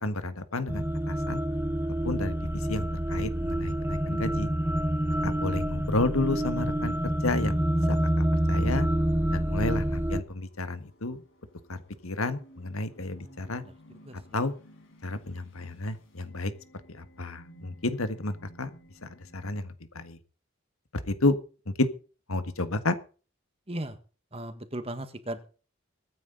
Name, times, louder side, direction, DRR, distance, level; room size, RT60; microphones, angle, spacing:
voice 1, 0.0-1.4 2.0-4.5 5.2-7.6 7.9-8.0 8.5-8.9 9.3-11.2 11.7-11.8 12.0-13.6 14.3-14.5 15.0-16.5 16.9-18.7 19.0-20.2 21.1-21.4 21.7-21.9 22.3-23.0, left 2 dB, 90° left, 11 dB, 1.7 m, -31 dB
sound 1, 0.7-10.2, right 1 dB, 10° right, 0.8 m, -27 dB
sound 2, 3.4-19.6, equal, 70° left, 7.4 m, -58 dB
voice 2, 14.0-14.4 23.7-24.0 24.3-25.4, right 1 dB, 25° right, 9 dB, 1.7 m, -37 dB
23.0 x 9.7 x 4.0 m, 0.37 s
head